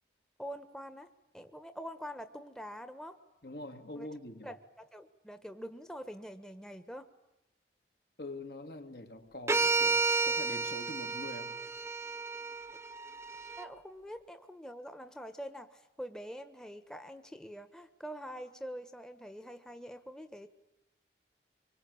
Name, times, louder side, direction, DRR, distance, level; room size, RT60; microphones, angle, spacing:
voice 1, 0.4-1.1 1.3-3.2 3.9-4.1 4.4-7.1 13.6-20.5, equal, 5° left, 1.3 m, -45 dB
voice 2, 3.4-4.5 8.2-11.6, left 2 dB, 60° left, 2.8 m, -44 dB
sound 1, 9.5-13.7, right 4 dB, 15° right, 1.2 m, -32 dB
25.5 x 25.0 x 8.7 m
head